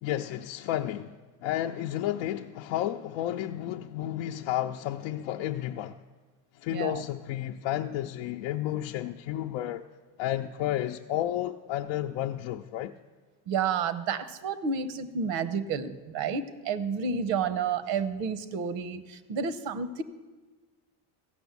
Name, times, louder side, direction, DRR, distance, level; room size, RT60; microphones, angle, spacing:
voice 1, 0.0-6.0 6.6-9.8 10.2-12.9, left 12 dB, 75° left, 0.6 m, -32 dB
voice 2, 13.5-20.0, right 6 dB, 70° right, 1.0 m, -30 dB
15.0 x 6.2 x 8.2 m
supercardioid pair, 105°, 46 cm